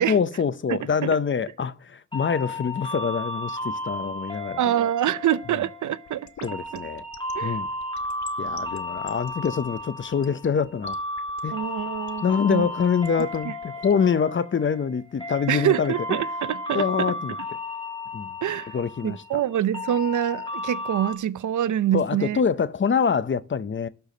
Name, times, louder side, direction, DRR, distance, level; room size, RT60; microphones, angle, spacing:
voice 1, 0.1-4.6 6.4-7.0 7.4-7.7 8.4-11.0 11.4-11.6 12.2-15.9 16.7-17.3 18.1-18.3 18.7-19.2 21.9-23.9, left 6 dB, 40° left, 0.7 m, -25 dB
voice 2, 0.7-1.2 4.6-6.8 7.3-7.6 11.5-12.7 13.4-13.5 15.5-17.1 18.4-18.8 19.0-22.4, right 11 dB, 80° right, 0.7 m, -26 dB
sound 1, 2.1-21.1, left 1 dB, 15° left, 2.1 m, -34 dB
sound 2, 6.1-14.1, left 8 dB, 70° left, 0.9 m, -46 dB
12.0 x 4.6 x 6.6 m
cardioid pair, 75°, 30 cm